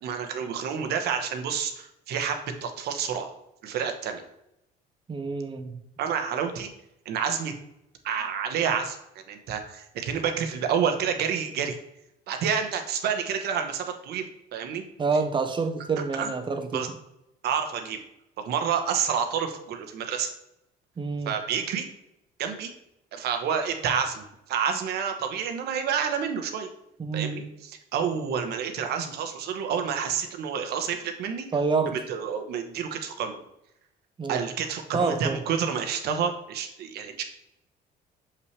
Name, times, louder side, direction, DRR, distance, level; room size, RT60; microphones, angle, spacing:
voice 1, 0.0-3.3 3.6-4.2 6.0-6.7 7.0-7.5 8.0-11.8 12.3-14.8 16.1-16.9 17.4-18.0 18.4-20.3 21.2-21.9 22.4-22.7 23.1-26.7 27.1-31.5 31.9-33.4 34.3-37.2, right 7 dB, 75° right, 6 dB, 1.2 m, -29 dB
voice 2, 5.1-5.8 15.0-16.8 21.0-21.4 27.0-27.4 31.5-31.9 34.2-34.5 34.9-35.4, right 4 dB, 30° right, 7 dB, 0.9 m, -27 dB
6.6 x 5.8 x 3.3 m, 0.82 s
cardioid pair, 110°, 17 cm